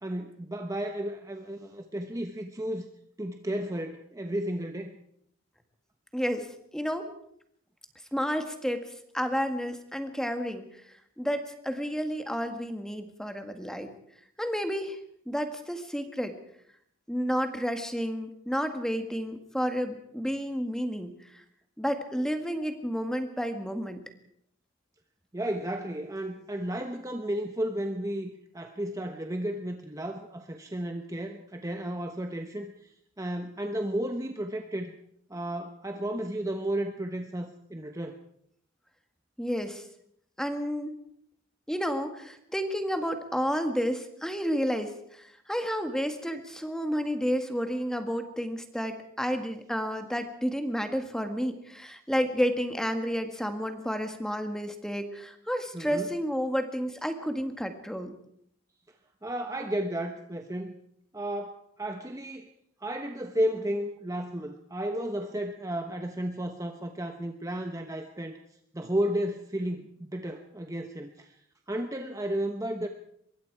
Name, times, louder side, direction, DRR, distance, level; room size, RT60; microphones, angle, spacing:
voice 1, 0.0-2.9 3.2-4.9 25.3-34.9 35.3-38.2 55.7-56.1 59.2-60.7 61.1-62.5 62.8-68.4 68.7-71.3 71.7-72.9, right 1 dB, 15° right, 5 dB, 1.1 m, -33 dB
voice 2, 6.1-7.1 8.1-13.9 14.4-15.0 15.3-16.3 17.1-21.4 21.8-24.0 39.4-39.8 40.4-41.0 41.7-58.2, equal, 5° left, 6 dB, 1.8 m, -31 dB
24.5 x 22.0 x 4.8 m, 0.69 s
head